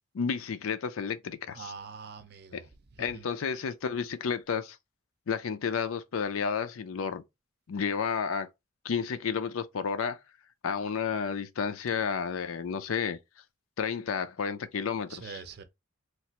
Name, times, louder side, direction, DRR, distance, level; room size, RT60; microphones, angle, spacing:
voice 1, 0.1-1.7 3.0-4.8 5.3-7.2 7.7-8.5 8.8-10.2 10.6-13.2 13.8-15.4, left 6 dB, 85° left, 0.5 m, -31 dB
voice 2, 1.5-2.7 3.0-3.3 15.1-15.6, right 5 dB, 50° right, 0.5 m, -44 dB
3.2 x 2.5 x 2.9 m
head